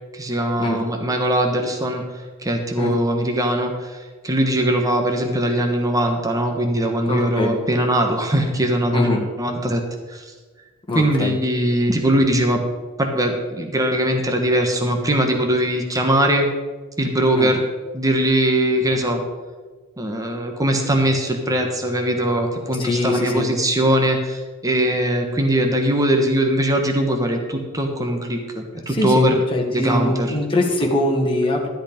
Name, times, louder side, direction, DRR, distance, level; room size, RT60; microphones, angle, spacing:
voice 1, 0.1-2.0 2.4-9.8 10.1-10.2 10.9-12.6 13.0-16.5 17.0-17.6 17.9-19.2 20.0-29.4 29.7-30.3, right 1 dB, 15° right, 3 dB, 1.2 m, -21 dB
voice 2, 7.1-7.5 8.9-9.2 10.9-11.3 17.3-17.5 22.8-23.5 28.9-31.7, left 1 dB, 25° left, -1 dB, 2.0 m, -22 dB
13.0 x 8.2 x 5.2 m, 1.4 s
head